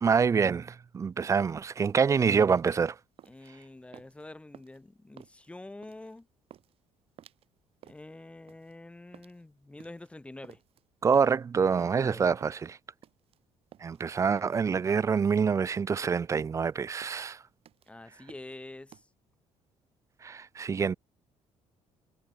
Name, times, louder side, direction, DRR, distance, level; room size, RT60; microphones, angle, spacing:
voice 1, 0.0-3.0 11.0-12.8 13.8-17.4 20.2-20.9, right 6 dB, 25° right, 0.5 m, -26 dB
sound 1, 1.0-19.0, right 11 dB, 55° right, 2.5 m, -56 dB
voice 2, 3.3-6.3 7.9-10.6 12.0-12.3 17.9-19.1, left 2 dB, 10° left, 1.9 m, -46 dB
cardioid pair, 125°, 11 cm